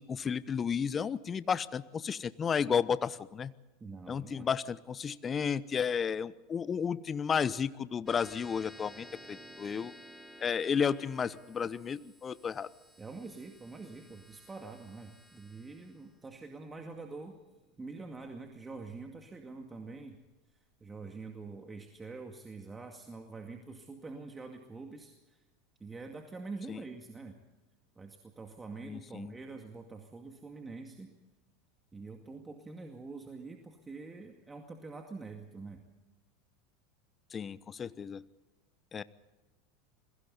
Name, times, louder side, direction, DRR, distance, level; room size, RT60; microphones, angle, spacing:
voice 1, 0.0-3.5 4.1-9.9 10.4-12.7 26.7-26.8 28.8-29.3 37.3-38.2 38.9-39.0, left 7 dB, 25° left, 17 dB, 0.9 m, -32 dB
voice 2, 3.8-4.5 13.0-17.4 17.8-20.2 20.8-25.4 25.8-27.4 28.0-31.1 31.9-35.8, right 3 dB, 15° right, 4 dB, 2.2 m, -45 dB
sound 1, 8.1-18.9, equal, ahead, 3.7 m, -55 dB
29.0 x 22.5 x 4.1 m, 1.1 s
hypercardioid pair, 85°, 0 cm